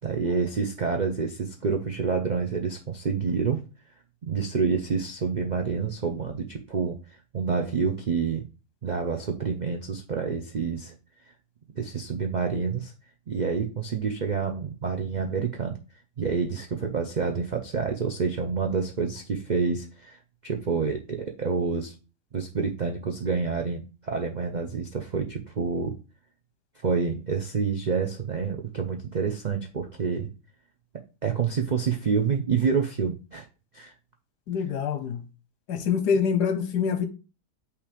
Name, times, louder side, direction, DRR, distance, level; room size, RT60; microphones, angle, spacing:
voice 1, 0.0-3.6 4.2-7.0 7.3-8.5 8.8-10.9 11.8-12.9 13.3-15.8 16.2-22.0 22.3-25.9 26.8-30.3 31.2-33.5 33.7-33.9, right 5 dB, 85° right, 0.4 m, -28 dB
voice 2, 34.5-35.2 35.7-37.1, left 6 dB, 80° left, 1.5 m, -25 dB
5.7 x 3.3 x 5.0 m
omnidirectional pair, 1.8 m